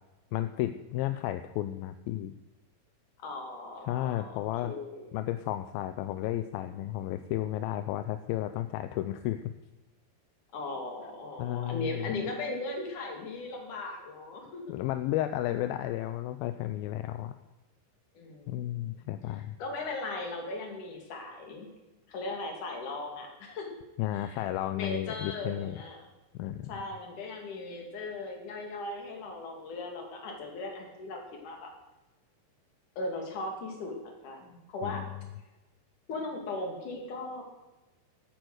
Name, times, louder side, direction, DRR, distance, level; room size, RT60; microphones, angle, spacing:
voice 1, 0.3-2.3 3.9-4.7 5.1-9.4 11.4-12.1 14.7-17.3 18.5-19.6 24.0-25.8 26.3-26.7 34.8-35.1, left 13 dB, 80° left, 10 dB, 2.3 m, -33 dB
voice 2, 3.2-5.1 10.5-14.8 18.1-19.1 19.6-21.7 22.1-23.7 24.2-24.4 24.7-26.1 26.7-31.7 33.0-35.0 36.1-37.4, left 2 dB, 55° left, 2 dB, 3.8 m, -38 dB
13.5 x 9.1 x 7.9 m, 1.1 s
omnidirectional pair, 4.6 m